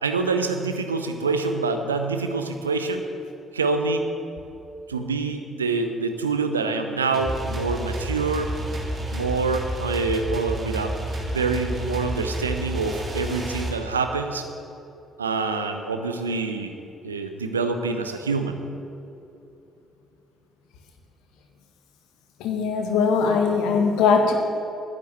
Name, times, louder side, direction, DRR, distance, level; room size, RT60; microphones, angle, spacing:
voice 1, 0.0-3.0 3.5-4.1 4.9-8.5 9.1-10.9 11.3-14.5 15.2-16.7 17.0-18.6, right 4 dB, 80° right, 7 dB, 0.7 m, -26 dB
sound 1, 7.1-13.7, right 1 dB, 35° right, 3.3 m, -30 dB
voice 2, 22.4-24.3, left 5 dB, 65° left, 3 dB, 1.6 m, -20 dB
11.0 x 10.5 x 7.6 m, 2.8 s
figure-of-eight pair, 45°, 0 cm